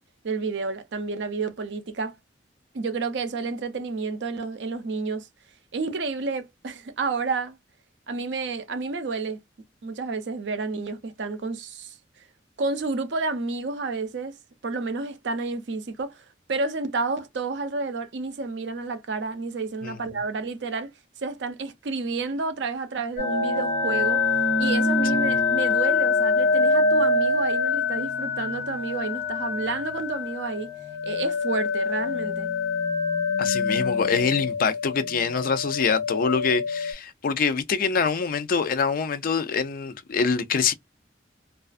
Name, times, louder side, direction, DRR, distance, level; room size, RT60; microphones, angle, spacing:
voice 1, 0.2-2.2 2.7-5.3 5.7-7.6 8.1-9.4 9.8-12.0 12.6-14.4 14.6-20.9 21.2-24.2 24.6-30.7 31.0-32.5, right 3 dB, 80° right, 0.5 m, -30 dB
sound 1, 23.2-36.9, left 4 dB, 70° left, 1.0 m, -25 dB
voice 2, 33.4-40.7, left 5 dB, 55° left, 0.4 m, -25 dB
2.4 x 2.3 x 2.4 m
head